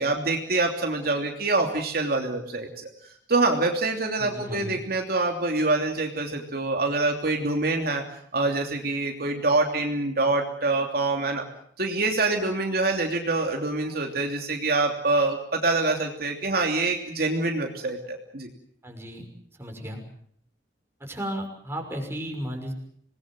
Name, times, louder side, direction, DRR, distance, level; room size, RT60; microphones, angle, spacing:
voice 1, 0.0-2.9 3.3-8.0 8.3-11.4 11.8-18.5, right 2 dB, 60° right, 2 dB, 3.1 m, -25 dB
voice 2, 4.2-4.8 18.8-19.3 19.6-20.0 21.0-22.7, equal, 15° right, 2 dB, 5.9 m, -34 dB
27.5 x 20.5 x 7.7 m, 0.64 s
head